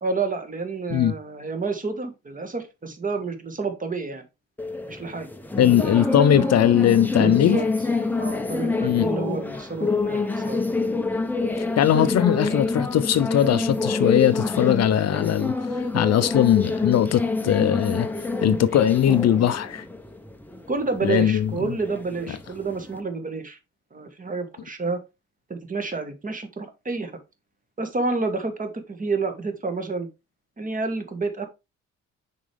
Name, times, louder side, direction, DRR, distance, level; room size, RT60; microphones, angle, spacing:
voice 1, 0.0-4.2 4.9-5.3 5.8-6.5 7.2-7.7 8.2-10.6 20.7-23.6 23.9-25.0 25.5-27.1 27.8-30.1 30.6-31.4, right 4 dB, 25° right, 1.5 m, -29 dB
sound 1, 4.6-23.0, left 3 dB, 5° left, 0.7 m, -27 dB
voice 2, 5.6-7.6 8.8-9.1 11.8-19.8 21.0-21.5, left 10 dB, 55° left, 0.6 m, -20 dB
6.2 x 4.6 x 3.4 m
cardioid pair, 90°, 30 cm